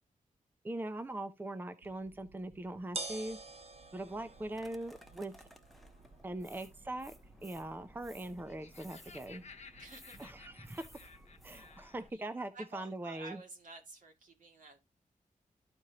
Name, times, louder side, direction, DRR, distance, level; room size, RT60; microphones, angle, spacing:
voice 1, 0.6-3.4 3.9-5.3 6.2-7.1 7.4-9.4 10.2-13.4, right 1 dB, 15° right, 0.6 m, -41 dB
sound 1, 1.8-11.9, right 3 dB, 45° right, 0.9 m, -51 dB
sound 2, 4.1-12.1, equal, ahead, 0.9 m, -58 dB
Laughter, 8.2-12.1, left 5 dB, 50° left, 1.0 m, -55 dB
voice 2, 9.8-10.3 12.1-12.2 12.5-14.8, right 3 dB, 70° right, 2.1 m, -51 dB
13.0 x 4.4 x 2.9 m
wide cardioid pair, 115°, 14 cm